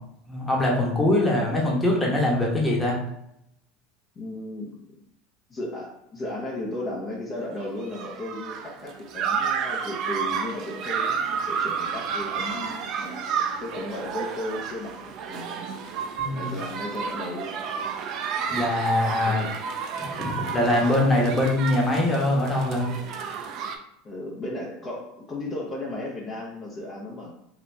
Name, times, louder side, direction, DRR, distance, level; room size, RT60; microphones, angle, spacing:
voice 1, 0.3-2.9 16.2-16.5 18.5-19.4 20.0-22.9, left 1 dB, 10° left, -3 dB, 1.1 m, -23 dB
voice 2, 4.2-4.8 5.5-15.6 16.3-17.8 19.2-19.6 24.0-27.3, left 1 dB, 30° left, -4 dB, 0.7 m, -35 dB
sound 1, 7.6-23.8, right 6 dB, 50° right, 0.4 m, -31 dB
2.9 x 2.6 x 3.2 m, 0.79 s
supercardioid pair, 110°, 0 cm